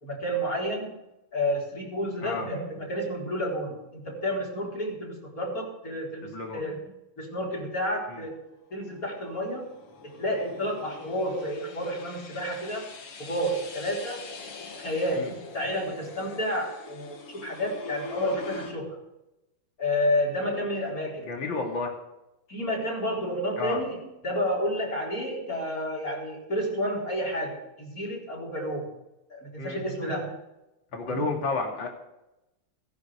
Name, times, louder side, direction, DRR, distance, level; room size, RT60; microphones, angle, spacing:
voice 1, 0.0-1.0 1.3-6.8 7.2-8.4 8.7-9.7 10.2-12.9 13.2-14.2 14.8-19.0 19.8-21.3 22.5-28.9 29.3-30.4 31.1-31.4, equal, 40° left, -3 dB, 4.7 m, -30 dB
voice 2, 6.2-6.6 15.2-15.3 21.3-21.9 23.6-23.8 29.6-29.8 30.9-31.9, left 3 dB, 60° left, 1 dB, 3.2 m, -31 dB
sound 1, 8.6-18.8, left 4 dB, 85° left, 2.6 m, -44 dB
18.0 x 10.5 x 5.0 m, 0.93 s
omnidirectional pair, 2.4 m